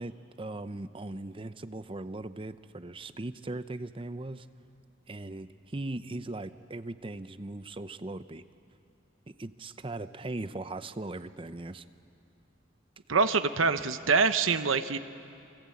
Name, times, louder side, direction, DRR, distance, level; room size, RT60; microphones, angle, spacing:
voice 1, 0.0-4.5 5.1-8.4 9.3-11.8, right 2 dB, 25° right, 12 dB, 0.7 m, -39 dB
voice 2, 13.1-15.0, right 4 dB, 90° right, 10 dB, 1.0 m, -25 dB
28.5 x 24.5 x 8.6 m, 2.5 s
head